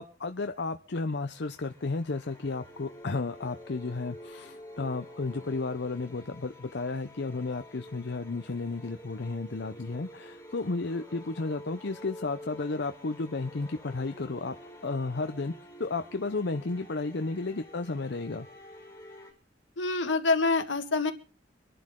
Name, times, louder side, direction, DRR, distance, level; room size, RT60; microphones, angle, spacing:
voice 1, 0.0-14.5 14.8-15.5 15.8-18.5, left 3 dB, 65° left, 7 dB, 0.7 m, -33 dB
sound 1, 1.3-19.3, equal, 15° left, 5.0 m, -49 dB
voice 2, 19.8-21.1, left 3 dB, 80° left, 8 dB, 1.8 m, -26 dB
25.0 x 11.5 x 3.8 m, 0.38 s
head